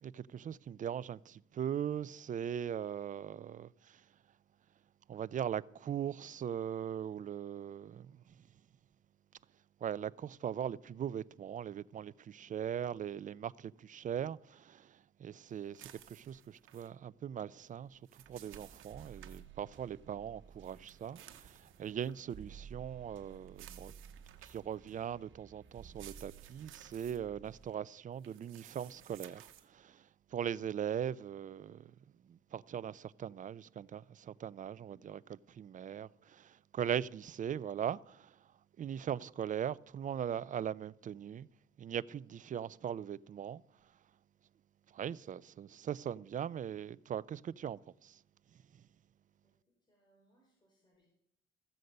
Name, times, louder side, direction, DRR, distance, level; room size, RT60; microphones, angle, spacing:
voice 1, 0.0-4.1 5.1-8.5 9.8-23.9 24.4-31.9 32.2-35.2 35.5-38.5 38.8-41.5 41.8-43.6 44.9-48.2, right 9 dB, 40° right, 0.4 m, -40 dB
sound 1, 15.7-16.9 17.8-19.4 20.6-22.2 23.5-24.7 25.8-27.2 28.2-29.7, right 11 dB, 85° right, 1.1 m, -56 dB
sound 2, 18.6-27.8, right 7 dB, 70° right, 1.4 m, -55 dB
voice 2, 49.4-51.1, right 1 dB, 20° left, 4.4 m, -73 dB
14.5 x 7.7 x 5.3 m
cardioid pair, 90°, 20 cm